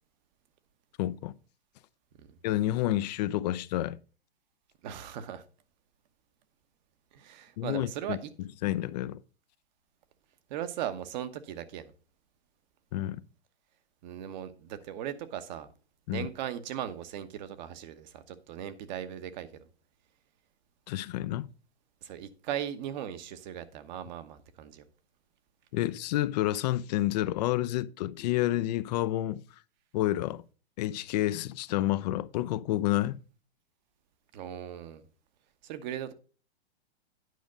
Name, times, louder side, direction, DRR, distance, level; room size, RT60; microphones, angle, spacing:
voice 1, 1.0-1.3 2.4-4.0 7.6-8.2 8.6-9.2 12.9-13.2 16.1-16.3 20.9-21.5 25.7-29.4 29.9-30.4 30.8-33.2, left 14 dB, 40° left, 0.5 m, -29 dB
voice 2, 4.8-5.4 7.1-8.3 10.5-11.9 14.0-15.7 16.1-19.7 22.0-24.9 34.3-35.0 35.6-36.1, right 10 dB, 45° right, 1.1 m, -38 dB
9.4 x 5.1 x 5.2 m
hypercardioid pair, 125°, 32 cm